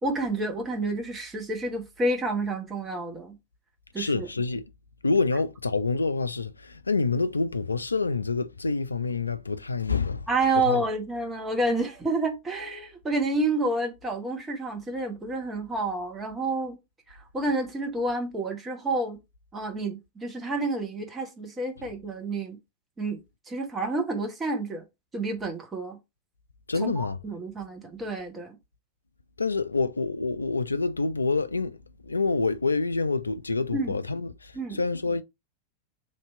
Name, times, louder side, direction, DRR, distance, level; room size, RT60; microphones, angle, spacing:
voice 1, 0.0-3.4 3.9-4.3 10.3-16.8 17.1-19.2 19.5-22.6 23.0-24.8 25.1-26.0 26.8-28.6 33.7-33.9 34.5-34.8, right 2 dB, 15° right, 1.1 m, -29 dB
voice 2, 4.0-4.6 5.0-10.3 10.6-10.8 26.7-27.2 29.4-31.8 32.0-35.2, left 3 dB, 80° left, 0.3 m, -27 dB
3.2 x 2.8 x 4.2 m
figure-of-eight pair, 90°, 0 cm